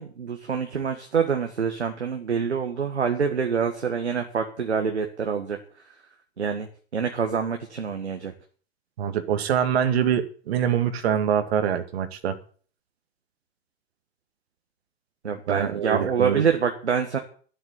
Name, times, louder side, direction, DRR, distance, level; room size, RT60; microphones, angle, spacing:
voice 1, 0.0-5.6 6.4-8.3 15.2-17.2, right 6 dB, 80° right, 5 dB, 1.8 m, -26 dB
voice 2, 9.0-12.4 15.5-16.4, right 8 dB, 65° right, 10 dB, 2.2 m, -24 dB
13.0 x 8.1 x 8.1 m, 0.42 s
figure-of-eight pair, 85°, 33 cm